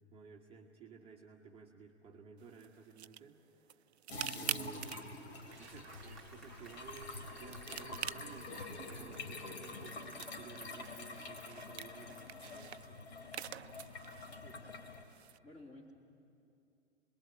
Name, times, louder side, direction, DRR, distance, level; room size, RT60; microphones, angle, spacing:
voice 1, 0.0-3.8 4.3-13.0, right 5 dB, 15° right, 0 dB, 1.2 m, -55 dB
sound 1, 2.4-15.4, right 10 dB, 65° right, 0.6 m, -48 dB
sound 2, 4.1-15.0, left 2 dB, 60° left, 3.2 m, -47 dB
Applause, 4.7-12.6, right 2 dB, ahead, 2.8 m, -61 dB
voice 2, 14.3-15.9, left 1 dB, 20° left, 2 dB, 3.3 m, -57 dB
28.0 x 20.5 x 8.7 m, 2.6 s
figure-of-eight pair, 100°, 36 cm